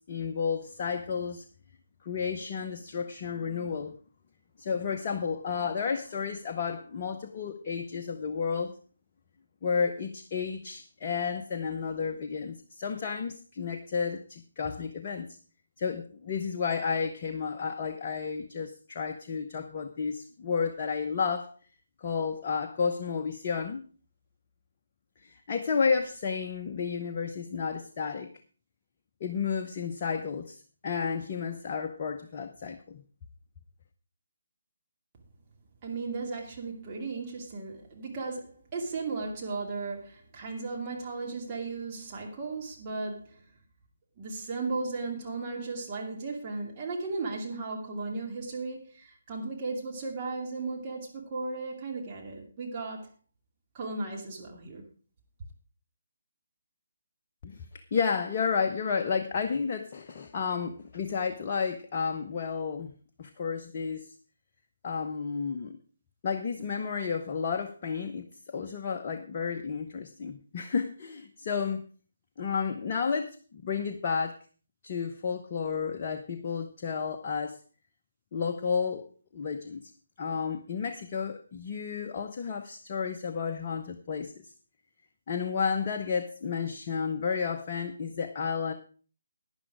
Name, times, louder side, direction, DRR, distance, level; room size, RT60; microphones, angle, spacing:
voice 1, 0.1-1.4 2.0-3.9 4.6-8.7 9.6-15.3 15.8-21.5 22.0-23.8 25.2-28.3 29.2-33.0 57.4-57.6 57.9-64.1 64.8-65.8 66.2-71.8 72.4-74.4 74.8-77.6 78.3-79.1 79.3-79.8 80.2-84.3 85.3-88.7, left 6 dB, 35° left, 4 dB, 0.9 m, -32 dB
voice 2, 35.8-43.4 44.2-53.1 53.7-54.8, right 3 dB, 25° right, -1 dB, 2.6 m, -36 dB
11.5 x 10.0 x 4.8 m, 0.38 s
figure-of-eight pair, 145°, 0 cm